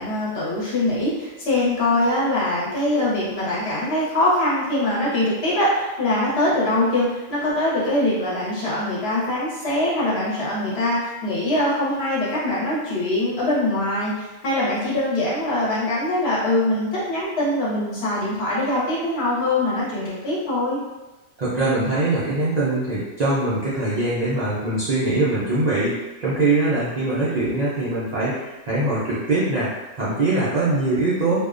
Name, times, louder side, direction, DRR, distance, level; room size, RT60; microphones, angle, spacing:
voice 1, 0.0-20.8, left 1 dB, 55° left, -7 dB, 0.9 m, -23 dB
voice 2, 21.4-25.9 26.2-29.7 30.0-31.4, right 2 dB, 60° right, -9 dB, 0.4 m, -22 dB
2.4 x 2.1 x 2.4 m, 1.1 s
omnidirectional pair, 1.4 m